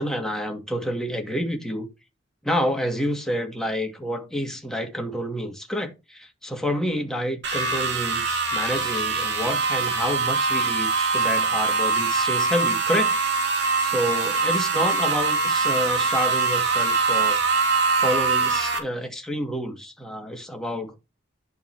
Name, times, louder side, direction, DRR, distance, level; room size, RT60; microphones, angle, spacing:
voice 1, 0.0-1.9 2.4-13.5 13.8-17.4 18.0-20.9, equal, ahead, 2.1 m, -29 dB
sound 1, 7.4-18.8, right 4 dB, 55° right, 2.4 m, -23 dB
11.0 x 4.0 x 6.0 m
head